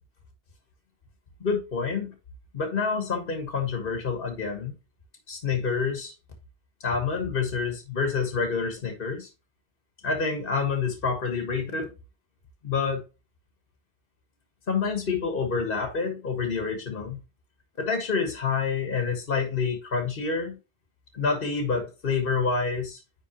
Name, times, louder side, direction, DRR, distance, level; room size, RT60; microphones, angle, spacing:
voice 1, 1.4-2.1 2.5-4.7 5.3-6.1 6.8-9.3 10.0-11.9 12.6-13.0 14.7-17.2 17.8-20.6 21.1-23.0, left 5 dB, 50° left, 1.6 m, -28 dB
9.8 x 3.8 x 2.9 m
omnidirectional pair, 1.1 m